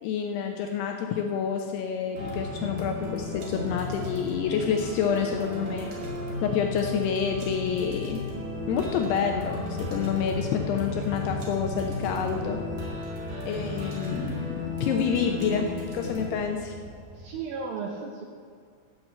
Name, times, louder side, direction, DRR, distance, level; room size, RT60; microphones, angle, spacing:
voice 1, 0.0-5.9 6.4-8.2 8.7-12.6 13.5-14.6 14.8-15.7 15.9-16.7, left 7 dB, 80° left, 3 dB, 2.4 m, -28 dB
sound 1, 2.1-17.4, left 2 dB, 55° right, 3.4 m, -34 dB
voice 2, 15.2-15.8 16.4-16.8 17.1-18.2, right 5 dB, 85° right, 1 dB, 2.0 m, -36 dB
12.5 x 6.0 x 7.7 m, 2.1 s
omnidirectional pair, 5.4 m